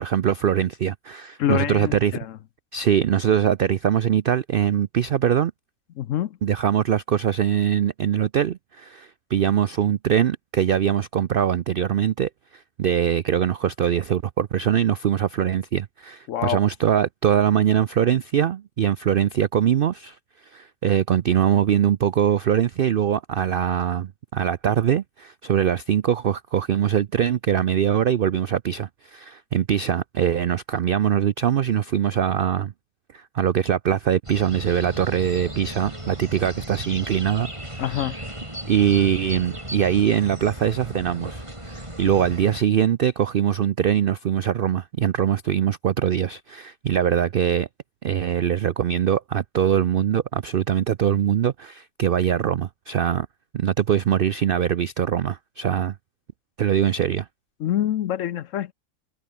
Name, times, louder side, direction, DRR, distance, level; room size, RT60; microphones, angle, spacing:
voice 1, 0.0-2.2 2.7-5.5 6.4-20.2 20.5-32.7 33.1-37.5 37.7-38.1 38.7-47.7 48.0-53.3 53.5-55.9 56.6-57.3, right 9 dB, 70° right, 0.5 m, -22 dB
voice 2, 1.4-2.3 6.0-6.4 16.3-16.6 37.8-38.2 57.6-58.7, left 11 dB, 65° left, 1.0 m, -26 dB
sound 1, 34.2-42.6, right 1 dB, 20° right, 5.6 m, -36 dB
omnidirectional pair, 1.6 m